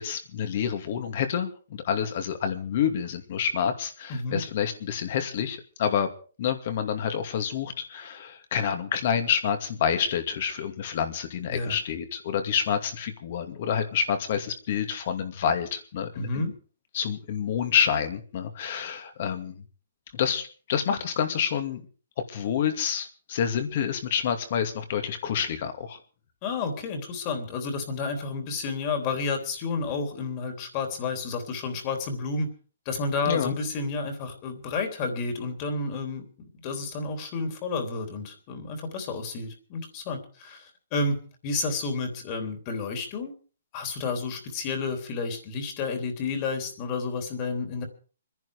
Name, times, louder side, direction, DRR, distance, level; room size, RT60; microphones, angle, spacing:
voice 1, 0.0-6.1 6.4-16.5 16.9-19.6 20.1-21.9 22.3-26.0 33.3-33.5, left 8 dB, 45° left, 7 dB, 2.5 m, -28 dB
voice 2, 4.1-4.4 11.5-11.8 16.1-16.5 26.4-32.5 32.8-36.2 36.6-43.3 43.7-47.8, left 3 dB, 30° left, 5 dB, 3.4 m, -31 dB
24.5 x 10.5 x 5.0 m, 0.39 s
hypercardioid pair, 160°, 0 cm